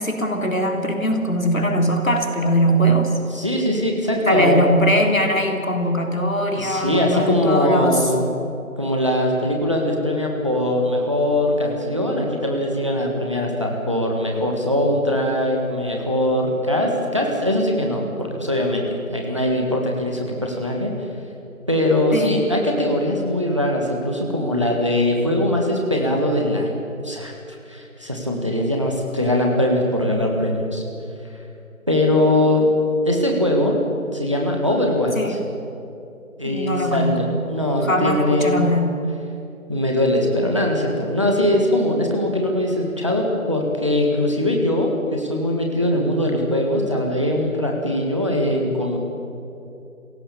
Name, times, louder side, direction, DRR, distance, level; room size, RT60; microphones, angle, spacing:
voice 1, 0.0-3.1 4.3-8.1 22.1-22.4 35.2-35.4 36.4-37.4 37.8-39.0, equal, 70° left, 3 dB, 3.5 m, -21 dB
voice 2, 3.3-4.6 6.5-8.3 8.8-20.9 21.7-27.3 27.7-30.8 31.9-32.6 33.0-33.8 34.1-35.4 36.4-38.7 39.7-49.0, left 1 dB, 20° right, 1 dB, 1.7 m, -21 dB
26.5 x 16.5 x 7.2 m, 2.7 s
figure-of-eight pair, 175°, 42 cm